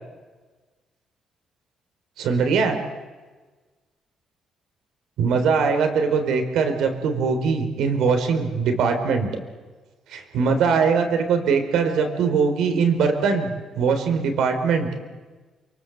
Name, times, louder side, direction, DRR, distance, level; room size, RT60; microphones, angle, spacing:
voice 1, 2.2-2.8 5.2-9.3 10.1-13.5 13.8-14.9, right 5 dB, 80° right, 6 dB, 4.1 m, -21 dB
27.5 x 24.0 x 8.0 m, 1.3 s
cardioid pair, 90°, 0 cm